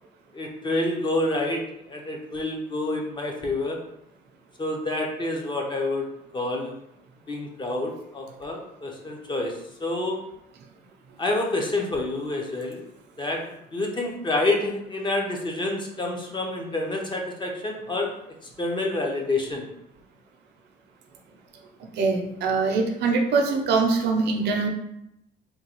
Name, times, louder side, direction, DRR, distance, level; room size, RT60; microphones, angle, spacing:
voice 1, 0.3-3.8 4.6-6.1 6.3-6.8 7.3-10.2 11.2-12.8 13.2-13.4 13.7-18.1 18.6-19.7, left 2 dB, 25° left, 0 dB, 0.7 m, -28 dB
voice 2, 22.0-24.7, right 4 dB, 65° right, 3 dB, 0.6 m, -23 dB
3.7 x 2.3 x 3.0 m, 0.80 s
cardioid pair, 95°, 18 cm